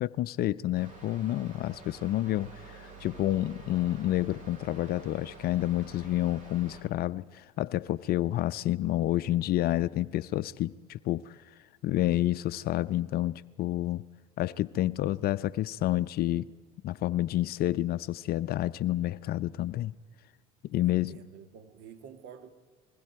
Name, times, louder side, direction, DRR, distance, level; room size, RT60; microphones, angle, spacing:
voice 1, 0.0-11.4 11.8-14.0 14.4-16.4 16.8-19.9 20.7-21.2, left 14 dB, 55° left, 0.6 m, -29 dB
sound 1, 0.7-6.8, right 4 dB, 45° right, 6.6 m, -49 dB
voice 2, 20.7-22.5, right 7 dB, 65° right, 2.2 m, -49 dB
29.0 x 21.0 x 4.6 m
supercardioid pair, 85°, 19 cm